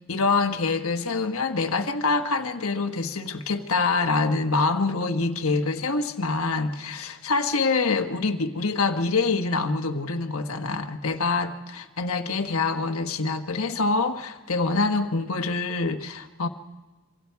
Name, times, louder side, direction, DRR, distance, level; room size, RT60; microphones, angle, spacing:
voice 1, 0.0-16.5, left 3 dB, 75° left, 5 dB, 1.3 m, -25 dB
27.0 x 25.5 x 4.7 m, 1.2 s
head